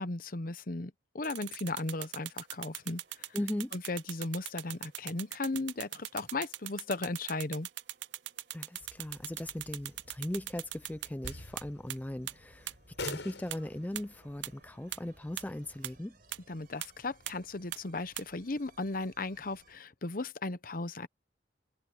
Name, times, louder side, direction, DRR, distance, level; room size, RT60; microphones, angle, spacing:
voice 1, 0.0-3.0 3.7-7.7 16.5-21.1, left 2 dB, 50° left, 0.9 m, -36 dB
sound 1, 1.2-11.6 11.9-12.0 12.3-12.4 12.7-12.8 13.1-13.2 13.5-13.6 13.9-14.0 14.4-14.5 14.9-15.0 15.4-15.5 15.8-15.9 16.3-16.4 16.8-16.9 17.3-17.4 17.7-17.8 18.2-18.3, right 15 dB, 75° right, 0.5 m, -39 dB
sound 2, 1.7-19.8, right 3 dB, 55° right, 5.1 m, -66 dB
voice 2, 3.3-3.7 8.5-16.2, left 1 dB, 10° left, 0.4 m, -38 dB
sound 3, 8.8-16.0, left 3 dB, 80° left, 6.5 m, -48 dB
head